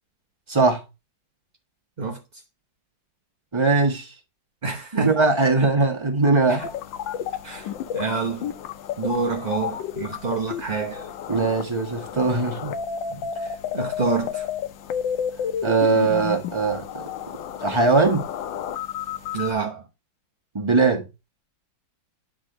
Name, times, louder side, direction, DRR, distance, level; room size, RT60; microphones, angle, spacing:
voice 1, 0.5-0.8 3.5-4.1 4.9-6.7 11.3-12.7 13.1-13.3 15.6-17.1 17.6-18.2 20.5-21.0, right 3 dB, 20° right, 1.1 m, -20 dB
voice 2, 4.6-5.2 6.5-6.7 7.4-8.5 9.0-11.1 13.4-14.5 19.3-19.8, right 4 dB, 45° right, 0.6 m, -27 dB
sound 1, 6.6-19.5, left 8 dB, 80° left, 1.4 m, -32 dB
9.7 x 3.8 x 3.8 m
omnidirectional pair, 2.0 m